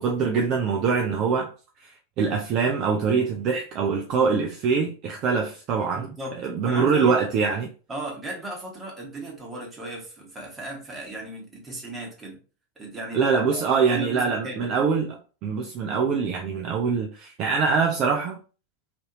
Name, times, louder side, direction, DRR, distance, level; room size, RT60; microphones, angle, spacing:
voice 1, 0.0-1.5 1.8-6.1 6.4-7.7 13.1-18.4, right 5 dB, 35° right, 0.4 m, -24 dB
voice 2, 5.9-6.4 6.6-7.2 7.9-12.4 12.8-14.7, right 1 dB, 15° right, 1.1 m, -36 dB
2.6 x 2.5 x 2.8 m
figure-of-eight pair, 90°, 0 cm